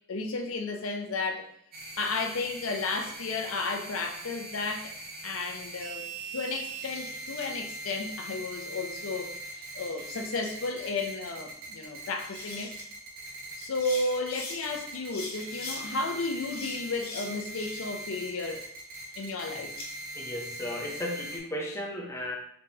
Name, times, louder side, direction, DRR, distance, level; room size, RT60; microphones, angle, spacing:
voice 1, 0.1-1.5 2.0-4.9 5.2-6.1 6.3-9.4 9.7-12.7 13.6-18.7 19.2-19.7, left 3 dB, 70° left, 0.5 m, -33 dB
sound 1, 1.7-21.4, right 2 dB, 45° right, 0.7 m, -41 dB
sound 2, 6.4-7.5 9.0-10.1 10.4-10.5 11.9-12.0 12.2-12.8 13.6-14.6 15.1-15.8 16.5-18.0 18.4-19.9, left 3 dB, 45° left, 0.9 m, -43 dB
voice 2, 20.1-22.4, left 1 dB, 15° left, 0.5 m, -35 dB
3.8 x 3.7 x 2.8 m
head